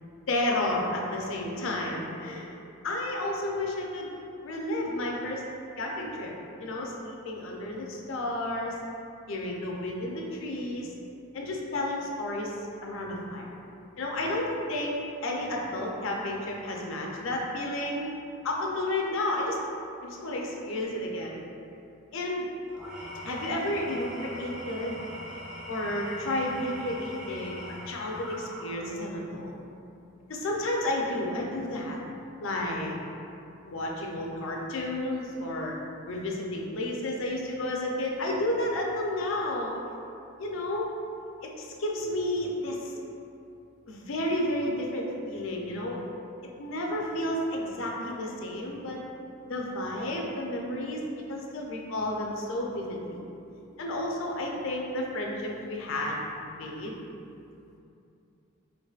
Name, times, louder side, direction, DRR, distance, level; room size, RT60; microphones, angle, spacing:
voice 1, 0.3-2.5 2.8-4.1 4.4-5.4 5.8-6.3 6.6-8.8 9.3-10.9 11.3-12.5 12.8-13.5 14.0-18.0 18.4-19.6 20.0-21.4 22.1-22.5 23.2-25.0 25.7-29.5 30.3-32.0 32.4-32.9 33.6-35.7 36.1-40.0 40.4-40.9 41.4-42.9 43.9-46.0 46.6-49.0 49.4-51.0 51.3-53.2 53.8-57.0, left 1 dB, 70° left, -1 dB, 0.5 m, -31 dB
Engine / Tools, 22.7-29.1, equal, 5° right, 0.3 m, -42 dB
4.6 x 2.5 x 2.3 m, 2.7 s
head